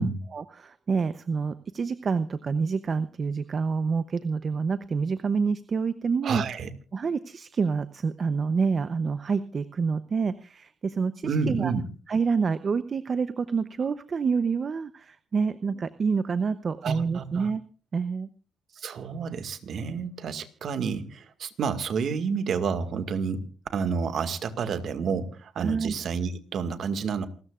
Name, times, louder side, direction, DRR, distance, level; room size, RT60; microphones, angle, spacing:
voice 1, 0.3-6.4 6.9-11.7 12.1-17.6 17.9-18.3 25.6-25.9, right 5 dB, 45° right, 13 dB, 0.8 m, -27 dB
voice 2, 6.2-6.7 11.2-11.9 16.8-17.5 18.8-23.4 23.7-27.3, right 5 dB, 60° right, 9 dB, 1.9 m, -29 dB
28.0 x 13.5 x 2.5 m, 0.38 s
cardioid pair, 90°, 0 cm